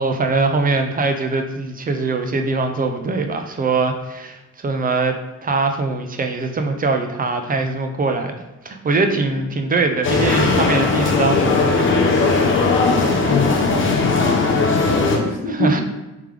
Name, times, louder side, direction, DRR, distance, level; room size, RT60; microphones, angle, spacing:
voice 1, 0.0-5.1 5.4-8.3 8.6-11.9 15.5-15.8, right 3 dB, 30° right, 5 dB, 0.5 m, -22 dB
sound 1, 10.0-15.2, left 4 dB, 40° left, 0.7 m, -18 dB
voice 2, 12.6-15.8, left 2 dB, 85° left, 1 dB, 0.9 m, -25 dB
3.4 x 3.3 x 3.3 m, 1.0 s
cardioid pair, 90°, 30 cm